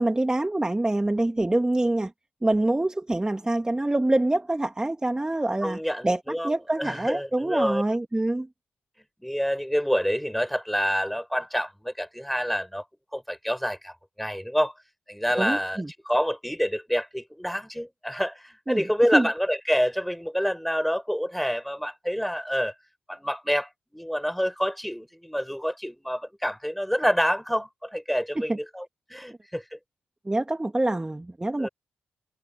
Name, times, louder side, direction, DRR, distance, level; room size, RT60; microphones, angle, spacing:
voice 1, 0.0-2.1 2.4-8.5 15.4-15.9 18.7-18.8 19.1-19.3 28.5-28.6 30.3-31.7, right 2 dB, 15° right, 1.8 m, -25 dB
voice 2, 5.6-6.5 6.8-7.8 9.2-12.8 13.1-14.7 15.1-22.7 23.1-29.8 31.6-31.7, equal, ahead, 5.7 m, -27 dB
supercardioid pair, 45°, 4 cm